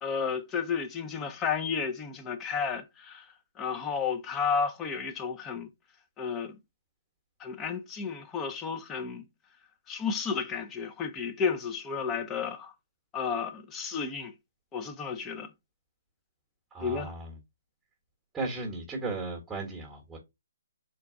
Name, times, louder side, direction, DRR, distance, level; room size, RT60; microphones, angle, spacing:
voice 1, 0.0-3.3 3.6-5.7 6.2-6.6 7.4-9.2 9.9-12.7 13.1-14.3 14.7-15.5 16.8-17.1, left 6 dB, 15° left, 0.5 m, -32 dB
voice 2, 16.7-17.4 18.3-20.2, right 3 dB, 5° right, 1.1 m, -36 dB
4.0 x 2.2 x 3.5 m
hypercardioid pair, 155°, 0 cm